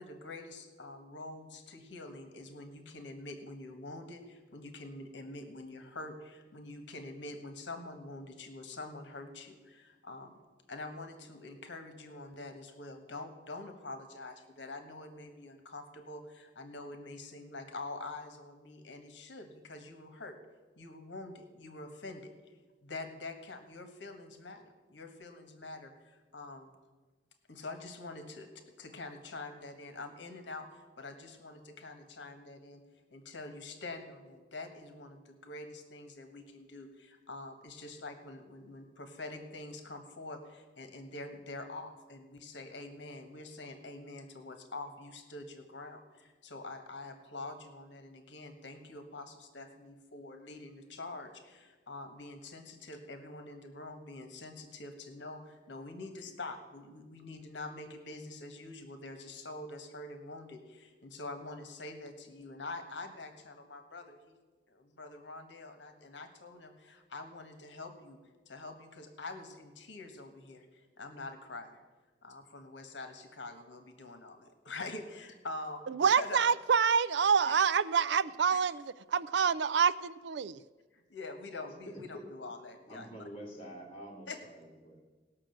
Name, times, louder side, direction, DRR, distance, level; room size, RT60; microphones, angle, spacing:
voice 1, 0.0-10.3 10.7-20.4 20.8-22.3 22.8-26.7 27.5-28.5 28.8-32.8 33.1-64.4 64.7-68.2 68.5-71.8 72.2-76.5 77.4-77.6 78.5-78.7 80.9-83.2 84.3-84.4, left 2 dB, 70° left, 7 dB, 1.4 m, -45 dB
voice 2, 75.9-80.6, right 6 dB, 65° right, 18 dB, 0.4 m, -27 dB
voice 3, 81.8-82.2 82.9-85.0, equal, 30° left, -2 dB, 2.9 m, -47 dB
18.5 x 6.3 x 7.8 m, 1.3 s
head